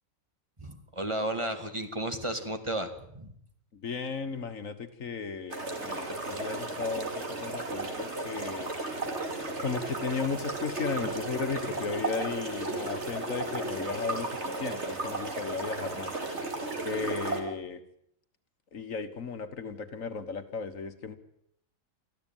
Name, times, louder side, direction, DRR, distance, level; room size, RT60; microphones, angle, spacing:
voice 1, 0.6-3.3, right 1 dB, 20° right, 6 dB, 2.2 m, -33 dB
voice 2, 3.7-8.7 9.6-16.2 16.8-17.8 18.7-21.1, left 5 dB, 75° left, 10 dB, 1.9 m, -35 dB
sound 1, 5.5-17.4, right 2 dB, 55° right, 3.4 m, -34 dB
24.5 x 14.5 x 9.1 m, 0.70 s
omnidirectional pair, 1.4 m